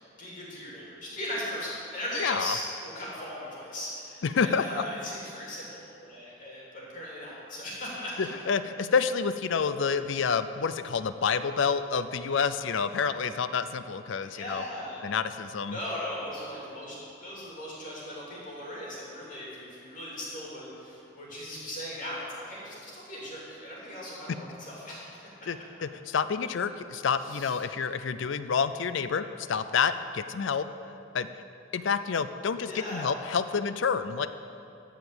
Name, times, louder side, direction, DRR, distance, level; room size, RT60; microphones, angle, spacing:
voice 1, 0.2-8.3 14.2-15.0 15.7-25.0 27.2-27.5 32.7-33.1, left 1 dB, 40° left, -6 dB, 2.8 m, -38 dB
voice 2, 2.1-2.6 4.2-4.8 8.2-14.6 15.0-15.8 25.5-30.7 31.1-31.3 31.7-34.3, left 6 dB, 65° left, 12 dB, 0.4 m, -28 dB
13.5 x 5.0 x 7.9 m, 2.7 s
head